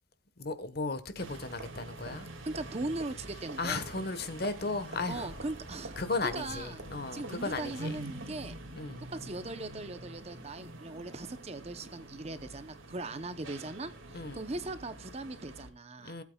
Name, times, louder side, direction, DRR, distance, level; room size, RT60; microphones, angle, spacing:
voice 1, 0.4-2.3 3.6-5.4 6.0-7.9 8.7-9.0 14.1-14.4 16.0-16.2, left 3 dB, 50° left, 1.2 m, -35 dB
sound 1, 1.2-15.7, right 2 dB, 85° right, 2.1 m, -46 dB
voice 2, 2.5-3.8 5.1-6.9 7.1-8.5 9.1-16.2, right 2 dB, 30° right, 0.7 m, -39 dB
20.0 x 8.5 x 2.3 m
head